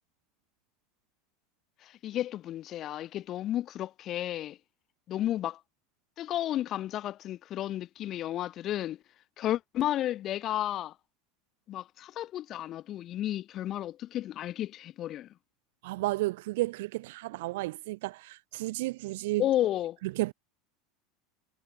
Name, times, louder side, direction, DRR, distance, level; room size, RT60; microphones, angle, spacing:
voice 1, 1.8-4.6 5.1-5.6 6.2-9.0 9.4-10.9 11.7-15.3 19.4-20.0, left 12 dB, 45° left, 1.6 m, -32 dB
voice 2, 15.8-19.5 20.0-20.3, right 20 dB, 75° right, 0.5 m, -32 dB
supercardioid pair, 115°, 0 cm